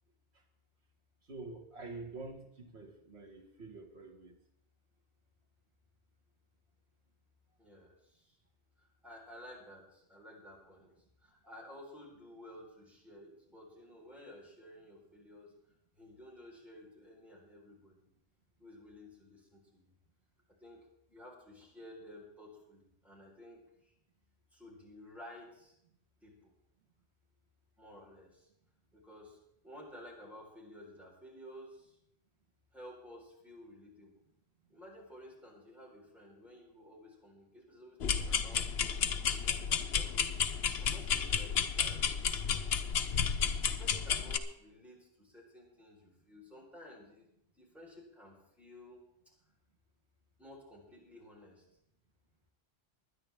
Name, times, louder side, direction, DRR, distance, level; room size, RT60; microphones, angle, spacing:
voice 1, 1.3-4.4, right 3 dB, 85° right, 2.1 m, -47 dB
voice 2, 7.6-8.4 8.8-15.6 15.9-18.0 18.6-19.9 20.6-23.9 24.5-25.7 26.2-26.5 27.8-28.5 28.9-29.4 29.6-32.0 32.7-34.2 34.7-42.6 43.6-49.0 50.4-51.6, left 1 dB, ahead, 4.2 m, -54 dB
sound 1, 38.0-44.4, left 7 dB, 75° left, 1.0 m, -32 dB
22.0 x 9.8 x 3.5 m
omnidirectional pair, 1.1 m